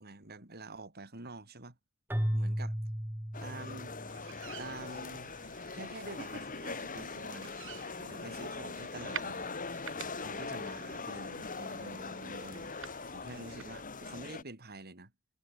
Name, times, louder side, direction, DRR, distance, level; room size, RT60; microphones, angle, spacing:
voice 1, 0.0-1.8 2.3-2.7 3.4-4.0 4.6-5.3 5.7-7.6 8.0-9.5 10.1-12.7 13.1-15.1, right 2 dB, 45° right, 3.8 m, -47 dB
Keyboard (musical), 2.1-4.4, equal, 10° right, 1.6 m, -34 dB
sound 1, 3.3-14.4, left 4 dB, 40° left, 2.7 m, -41 dB
sound 2, 4.1-13.7, right 9 dB, 65° right, 4.9 m, -50 dB
head